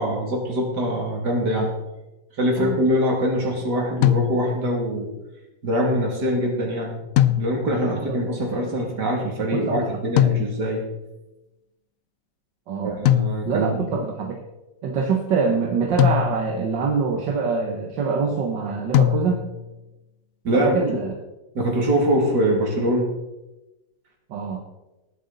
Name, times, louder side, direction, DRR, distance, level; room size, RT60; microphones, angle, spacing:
voice 1, 0.0-1.7 2.4-5.1 5.6-7.0 7.4-10.8 12.8-13.9 20.4-21.0 21.5-23.1, equal, 70° right, 0 dB, 3.3 m, -23 dB
sound 1, 4.0-4.8 7.2-7.9 10.2-10.9 13.1-13.8 16.0-16.8 18.9-19.7, left 12 dB, 70° left, 0.8 m, -21 dB
voice 2, 9.5-9.9 10.2-10.4 12.7-13.0 13.4-14.4 14.8-19.4 20.5-21.1 24.3-24.6, right 5 dB, 85° right, 2 dB, 1.8 m, -25 dB
19.5 x 7.8 x 4.1 m, 1.0 s
omnidirectional pair, 1.9 m